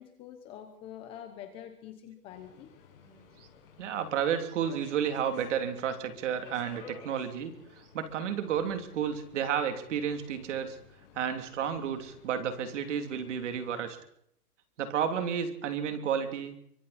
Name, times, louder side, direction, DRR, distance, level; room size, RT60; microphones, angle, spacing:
voice 1, 0.0-2.7, left 10 dB, 10° left, 7 dB, 0.9 m, -46 dB
Subway metro underground, 2.3-13.9, left 5 dB, 35° left, 6.6 m, -54 dB
voice 2, 3.1-3.5 3.8-10.8 11.1-14.0 14.8-16.6, right 8 dB, 50° right, 7 dB, 3.2 m, -32 dB
26.0 x 24.5 x 4.3 m, 0.68 s
hypercardioid pair, 170°, 46 cm